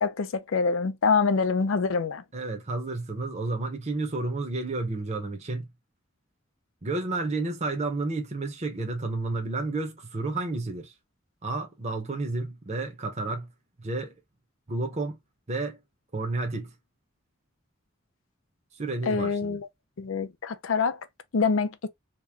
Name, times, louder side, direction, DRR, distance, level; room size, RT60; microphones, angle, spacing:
voice 1, 0.0-2.2 19.1-19.7 20.0-21.0 21.3-21.7, left 5 dB, 85° left, 0.5 m, -25 dB
voice 2, 2.3-5.7 6.8-10.9 11.4-13.5 13.8-14.1 14.7-15.2 15.5-15.8 16.1-16.7 18.8-19.6, right 2 dB, 35° right, 0.8 m, -31 dB
3.0 x 2.7 x 3.5 m
head